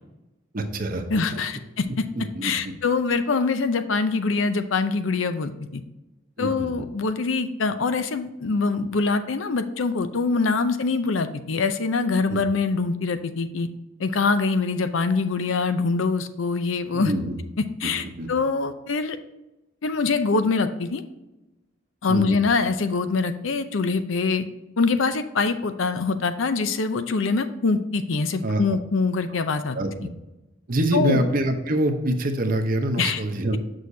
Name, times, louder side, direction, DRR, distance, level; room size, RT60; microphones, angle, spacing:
voice 1, 0.5-1.4 2.1-2.7 6.4-6.7 12.3-12.4 16.9-17.4 17.8-17.9 18.2-18.3 22.1-22.4 28.4-28.6 29.7-30.1 30.7-33.6, right 1 dB, 45° right, 5 dB, 0.8 m, -25 dB
voice 2, 1.1-2.0 2.4-5.8 6.4-13.7 14.0-17.1 17.8-19.2 19.8-21.0 22.0-24.4 24.8-29.8 30.9-31.2 33.0-33.2, left 4 dB, 80° left, 10 dB, 0.6 m, -24 dB
6.3 x 6.3 x 2.7 m, 1.0 s
head